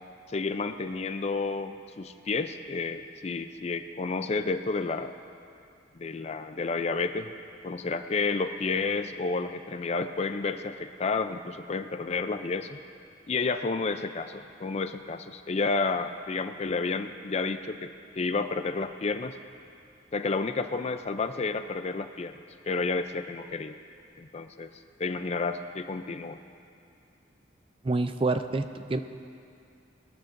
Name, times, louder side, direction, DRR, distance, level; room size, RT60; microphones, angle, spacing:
voice 1, 0.3-5.1 6.0-7.3 7.6-12.8 13.3-19.3 20.1-22.4 22.7-23.8 24.2-24.7 25.0-26.4, left 4 dB, 35° left, 9 dB, 0.4 m, -31 dB
voice 2, 27.8-29.0, right 3 dB, 30° right, 9 dB, 0.4 m, -27 dB
20.5 x 13.5 x 2.6 m, 2.5 s
head